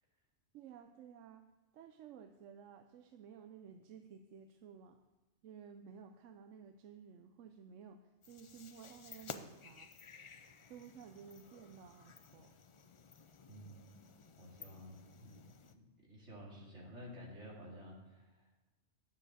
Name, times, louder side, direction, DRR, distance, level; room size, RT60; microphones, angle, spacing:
voice 1, 0.5-1.4 1.7-5.0 5.4-9.9 10.7-12.5, right 7 dB, 85° right, 7 dB, 1.0 m, -54 dB
sound 1, 8.2-15.7, left 5 dB, 50° left, 0.3 m, -54 dB
voice 2, 13.5-14.1 14.4-18.6, equal, 70° right, -3 dB, 2.8 m, -53 dB
10.0 x 7.2 x 6.4 m, 1.1 s
omnidirectional pair, 1.3 m